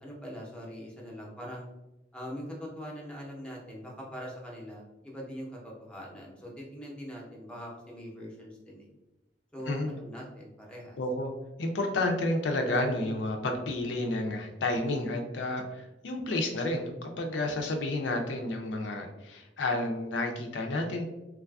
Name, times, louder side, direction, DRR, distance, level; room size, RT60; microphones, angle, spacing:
voice 1, 0.0-1.7 2.1-8.9 9.5-11.0, equal, 5° left, -2 dB, 0.5 m, -42 dB
voice 2, 11.0-11.3 11.6-21.0, left 2 dB, 85° left, 3 dB, 0.4 m, -31 dB
3.2 x 2.4 x 2.2 m, 0.99 s
head